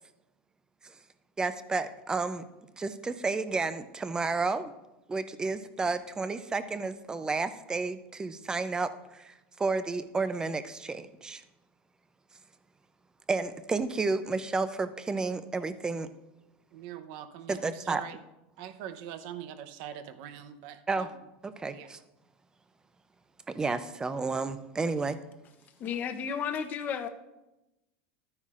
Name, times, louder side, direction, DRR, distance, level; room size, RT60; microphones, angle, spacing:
voice 1, 1.4-2.4 2.8-4.7 5.1-11.4 13.3-16.1 17.5-18.0 20.9-21.1 21.6-22.0 23.5-25.2, right 3 dB, 15° right, 12 dB, 0.5 m, -31 dB
voice 2, 16.7-18.2 18.6-21.2 21.7-21.9, right 10 dB, 60° right, 10 dB, 0.8 m, -43 dB
voice 3, 25.8-27.1, left 7 dB, 35° left, 7 dB, 0.8 m, -33 dB
12.5 x 9.6 x 2.5 m, 0.97 s
supercardioid pair, 140°, 6 cm